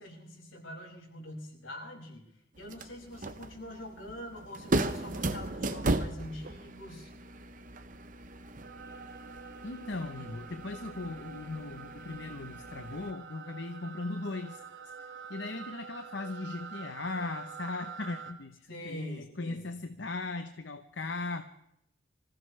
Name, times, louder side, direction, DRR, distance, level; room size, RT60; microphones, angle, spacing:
voice 1, 0.0-2.2 2.6-7.1 18.7-19.6, left 1 dB, 80° left, -1 dB, 6.3 m, -44 dB
sound 1, 2.6-13.1, right 2 dB, 40° right, 0.9 m, -37 dB
sound 2, 8.6-18.3, right 6 dB, 70° right, 2.0 m, -47 dB
voice 2, 9.6-14.6 15.3-21.4, left 3 dB, 65° left, 7 dB, 0.9 m, -38 dB
26.0 x 16.0 x 3.3 m, 0.77 s
head